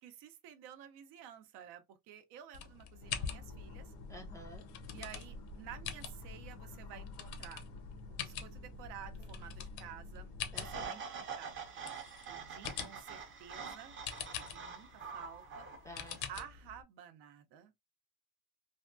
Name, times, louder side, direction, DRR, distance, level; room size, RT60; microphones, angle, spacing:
voice 1, 0.0-3.9 4.9-7.7 8.1-11.5 12.3-14.0 14.4-15.7 16.3-17.7, right 9 dB, 60° right, 0.7 m, -52 dB
sound 1, 2.5-16.8, left 8 dB, 55° left, 0.8 m, -46 dB
sound 2, 3.0-10.9, left 2 dB, 90° left, 1.2 m, -49 dB
voice 2, 4.1-4.7 10.5-11.0 15.8-16.3, left 1 dB, 5° left, 0.6 m, -51 dB
sound 3, 10.5-16.2, right 6 dB, 25° right, 0.7 m, -45 dB
3.4 x 2.2 x 2.5 m
cardioid pair, 125°, 45 cm